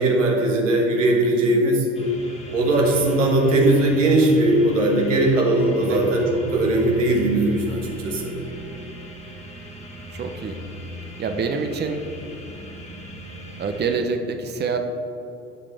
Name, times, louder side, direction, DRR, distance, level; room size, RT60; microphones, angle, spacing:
voice 1, 0.0-1.9 2.5-8.3, right 1 dB, 85° right, 0 dB, 1.4 m, -19 dB
sound 1, 1.9-14.0, equal, 15° left, 1.7 m, -39 dB
voice 2, 5.8-6.1 10.1-10.6 11.2-12.0 13.6-14.8, right 5 dB, 30° right, 6 dB, 0.8 m, -26 dB
14.0 x 5.1 x 3.5 m, 3.0 s
hypercardioid pair, 65°, 37 cm